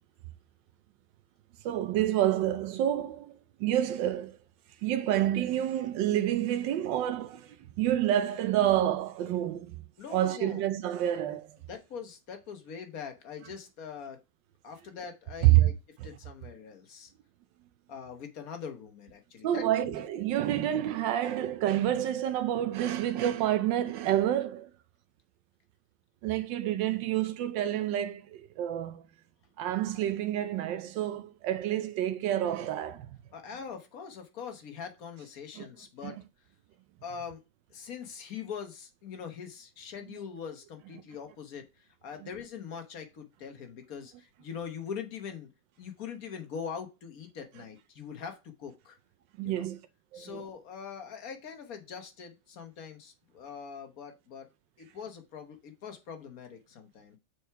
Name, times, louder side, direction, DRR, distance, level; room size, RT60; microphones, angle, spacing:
voice 1, 1.6-3.3 3.6-4.4 4.8-9.8 10.1-11.6 15.4-15.7 16.0-16.1 19.4-24.7 26.2-29.1 29.6-33.1 35.6-35.7 36.0-36.2 49.4-49.8 50.1-50.4, right 12 dB, 90° right, 1.4 m, -28 dB
voice 2, 10.0-10.6 11.7-14.2 14.6-15.7 16.0-17.1 17.9-20.0 33.3-36.2 37.0-37.4 37.7-45.5 45.8-49.0 49.4-49.7 50.1-54.5 54.8-57.2, left 7 dB, 55° left, 1.5 m, -42 dB
6.3 x 4.7 x 4.5 m
omnidirectional pair, 1.9 m